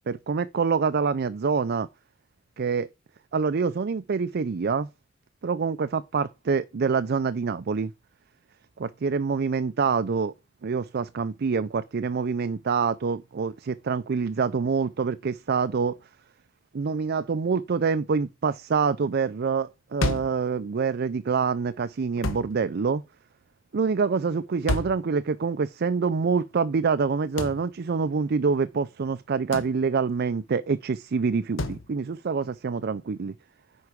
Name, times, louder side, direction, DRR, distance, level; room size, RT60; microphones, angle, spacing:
voice 1, 0.1-1.9 2.6-2.9 3.3-4.9 5.4-7.9 8.8-10.3 10.6-15.9 16.7-23.0 23.7-33.3, right 5 dB, 50° right, 0.4 m, -26 dB
sound 1, 20.0-20.4 22.2-22.5 24.7-25.0 27.4-27.6 29.5-29.8 31.6-31.8, left 2 dB, 65° left, 1.1 m, -29 dB
9.7 x 4.7 x 4.7 m
head